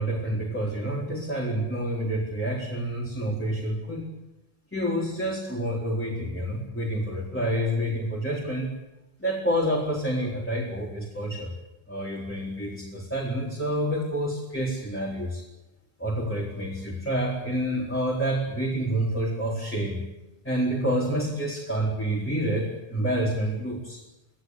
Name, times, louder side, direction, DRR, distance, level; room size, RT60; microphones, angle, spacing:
voice 1, 0.0-4.1 4.7-8.7 9.2-11.5 11.9-15.4 16.0-20.0 20.4-24.0, right 1 dB, 10° left, -4 dB, 4.3 m, -28 dB
26.0 x 16.5 x 9.7 m, 1.0 s
omnidirectional pair, 1.1 m